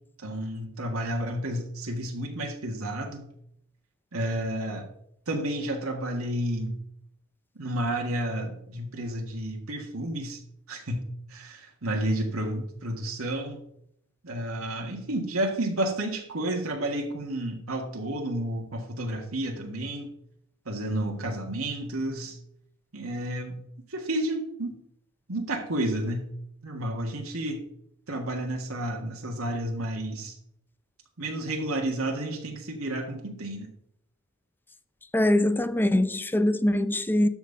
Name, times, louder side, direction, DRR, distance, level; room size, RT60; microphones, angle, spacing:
voice 1, 0.2-3.3 4.1-4.9 5.3-6.8 7.6-10.4 10.7-11.0 11.3-13.6 14.2-20.2 20.7-22.4 22.9-23.6 23.9-24.8 25.3-26.3 26.6-27.7 28.1-30.4 31.2-33.7, right 1 dB, 85° right, 1.8 m, -31 dB
voice 2, 35.1-37.3, left 1 dB, 10° left, 0.5 m, -23 dB
12.5 x 4.2 x 5.4 m
head